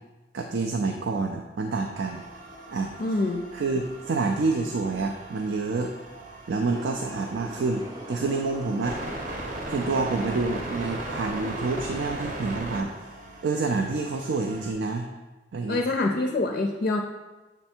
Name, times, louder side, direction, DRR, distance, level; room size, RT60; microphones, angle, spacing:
voice 1, 0.3-2.2 2.7-2.9 3.5-5.9 6.5-9.0 9.7-13.1 13.4-15.1 15.5-15.8, right 3 dB, 85° right, 3 dB, 0.4 m, -28 dB
sound 1, 1.9-14.7, right 1 dB, 50° right, 0.8 m, -39 dB
voice 2, 3.0-3.5 15.7-17.0, left 2 dB, 50° left, 3 dB, 0.4 m, -25 dB
sound 2, 6.7-12.0, right 1 dB, 20° right, 0.6 m, -41 dB
7.2 x 3.3 x 4.4 m, 1.2 s
head